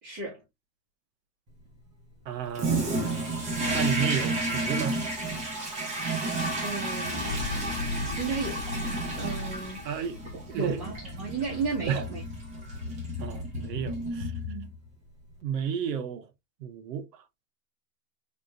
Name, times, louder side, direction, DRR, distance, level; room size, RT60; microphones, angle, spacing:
voice 1, 0.0-0.4 6.6-7.4 8.2-8.6 9.1-12.2 14.4-14.7, right 4 dB, 40° right, 2.4 m, -34 dB
voice 2, 2.2-5.0 9.8-10.2 10.5-10.8 11.9-12.0 13.2-14.3 15.4-16.2 16.6-17.0, right 8 dB, 85° right, 1.2 m, -32 dB
Toilet flush, 2.5-14.9, right 2 dB, 15° right, 0.7 m, -32 dB
sound 1, 7.1-11.6 12.1-12.2, left 3 dB, 35° left, 1.0 m, -36 dB
4.3 x 3.4 x 2.6 m
supercardioid pair, 170°, 48 cm